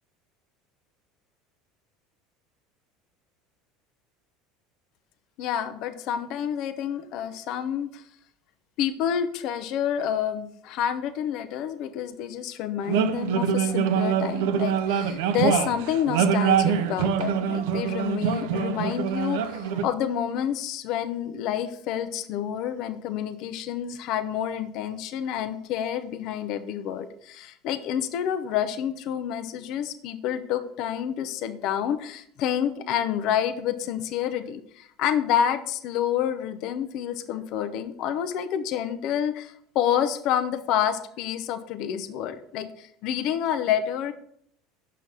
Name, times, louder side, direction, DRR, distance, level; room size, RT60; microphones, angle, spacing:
voice 1, 5.4-8.0 8.8-44.1, left 9 dB, 60° left, 10 dB, 0.6 m, -28 dB
sound 1, 12.9-19.8, right 8 dB, 75° right, 0.5 m, -24 dB
6.2 x 5.9 x 4.0 m, 0.66 s
hypercardioid pair, 80°, 0 cm